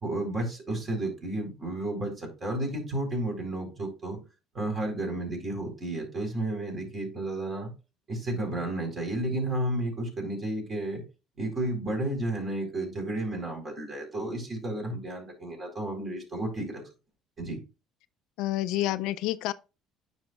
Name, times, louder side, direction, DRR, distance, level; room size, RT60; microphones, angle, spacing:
voice 1, 0.0-4.2 4.5-7.7 8.1-11.0 11.4-16.8 17.4-17.6, right 1 dB, 40° right, 4.2 m, -32 dB
voice 2, 18.4-19.5, left 15 dB, 75° left, 0.3 m, -28 dB
9.4 x 5.7 x 2.3 m
supercardioid pair, 70°, 0 cm